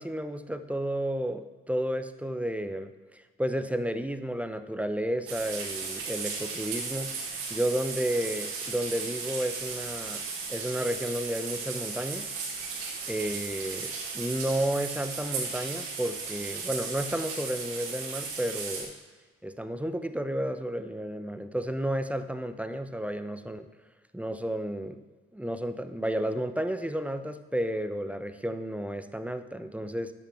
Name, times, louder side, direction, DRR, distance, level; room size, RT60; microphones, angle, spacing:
voice 1, 0.0-7.1 7.5-10.2 10.5-12.3 13.1-18.9 19.4-23.7 24.1-25.0 25.3-30.1, right 1 dB, 5° right, 10 dB, 0.9 m, -32 dB
sound 1, 5.3-18.8, right 5 dB, 75° right, 2.0 m, -36 dB
12.5 x 11.0 x 3.5 m, 1.3 s
figure-of-eight pair, 45°, 31 cm